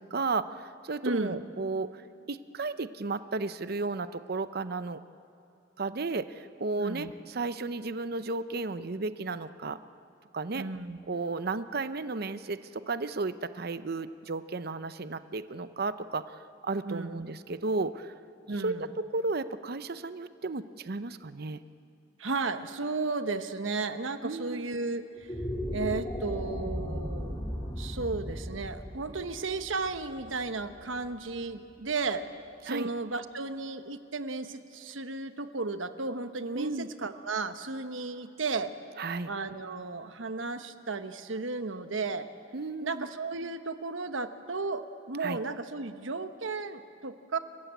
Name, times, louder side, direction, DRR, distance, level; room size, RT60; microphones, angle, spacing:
voice 1, 0.0-2.0 2.3-5.0 5.8-9.8 10.3-10.6 11.1-18.1 18.6-21.6 24.2-24.7 32.7-32.9 36.5-36.9 39.0-39.3 42.5-43.1 45.2-45.4, right 3 dB, 55° right, 12 dB, 0.7 m, -33 dB
voice 2, 1.0-1.4 6.8-7.1 10.5-11.0 16.8-17.2 18.5-18.9 22.2-25.3 25.7-32.3 32.6-38.7 39.3-42.3 42.8-47.4, right 3 dB, 90° right, 9 dB, 1.1 m, -34 dB
sound 1, 25.1-31.5, equal, 20° left, 2.2 m, -37 dB
29.5 x 15.0 x 8.4 m, 2.7 s
head